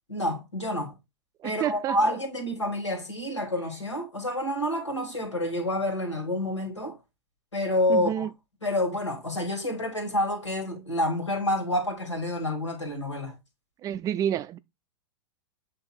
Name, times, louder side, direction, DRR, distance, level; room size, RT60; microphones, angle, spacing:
voice 1, 0.1-0.9 1.4-7.0 7.5-8.3 8.6-13.4, left 1 dB, 90° left, 2.2 m, -28 dB
voice 2, 1.4-2.0 7.9-8.3 13.8-14.6, right 10 dB, 25° right, 0.4 m, -29 dB
7.8 x 3.0 x 4.3 m
figure-of-eight pair, 100°, 15 cm